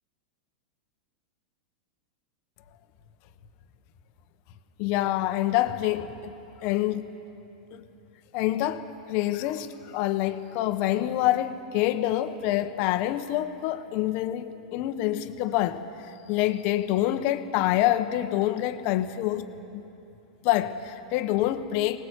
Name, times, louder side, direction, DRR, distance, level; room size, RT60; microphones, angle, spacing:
voice 1, 4.8-6.4 6.6-7.1 7.7-7.9 8.3-8.8 9.1-19.5 19.7-19.8 20.4-22.0, left 14 dB, 45° left, 1.1 m, -26 dB
23.0 x 19.5 x 8.3 m
supercardioid pair, 140°, 4 cm